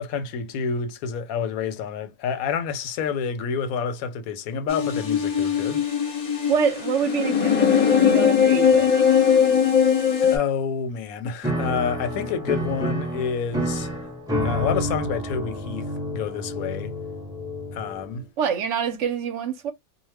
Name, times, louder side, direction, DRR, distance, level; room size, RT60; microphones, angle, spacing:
voice 1, 0.0-5.8 10.2-14.0 14.4-16.9 17.7-18.2, left 6 dB, 90° left, 1.1 m, -28 dB
sound 1, 4.7-10.4, left 7 dB, 40° left, 0.6 m, -20 dB
voice 2, 6.5-8.9 18.4-19.7, right 7 dB, 70° right, 0.8 m, -26 dB
Piano, 11.4-18.2, equal, 5° right, 0.5 m, -29 dB
2.3 x 2.1 x 3.2 m
omnidirectional pair, 1.4 m